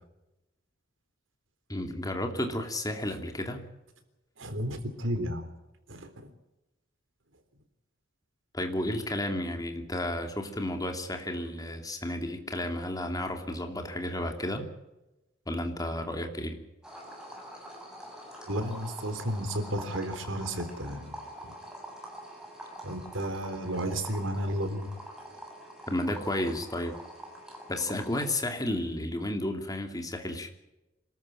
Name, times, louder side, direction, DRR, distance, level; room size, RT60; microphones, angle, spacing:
voice 1, 1.7-3.6 8.5-14.6 15.5-16.6 25.9-27.0 27.7-30.5, left 1 dB, 20° left, 5 dB, 2.8 m, -32 dB
voice 2, 4.4-5.5 5.9-6.3 18.5-21.2 21.4-21.5 22.8-24.9, right 1 dB, 75° right, 9 dB, 3.7 m, -33 dB
sound 1, 16.8-28.3, equal, 5° right, 7.2 m, -45 dB
26.0 x 13.5 x 8.9 m, 0.97 s
head